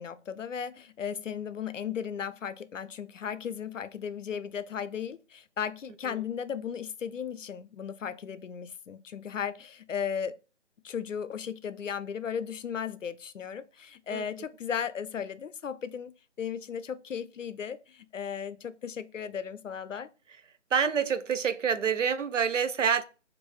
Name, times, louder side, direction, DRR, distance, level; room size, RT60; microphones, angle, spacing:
voice 1, 0.0-10.4 10.8-16.1 16.4-20.1, left 7 dB, 85° left, 0.5 m, -36 dB
voice 2, 20.7-23.0, right 7 dB, 80° right, 0.6 m, -27 dB
4.4 x 2.6 x 3.0 m
figure-of-eight pair, 160°, 37 cm